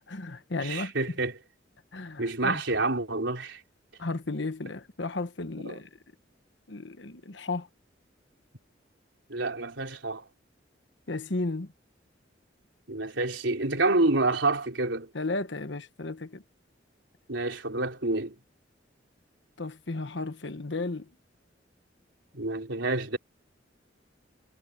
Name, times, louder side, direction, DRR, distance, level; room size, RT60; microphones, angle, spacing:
voice 1, 0.0-0.9 1.9-2.6 4.0-5.9 6.7-7.7 11.1-11.7 15.1-16.4 19.6-21.1, left 2 dB, 70° left, 1.3 m, -34 dB
voice 2, 0.6-1.3 2.2-3.6 5.6-5.8 9.3-10.3 12.9-15.1 17.3-18.4 22.3-23.2, right 2 dB, 80° right, 3.9 m, -28 dB
head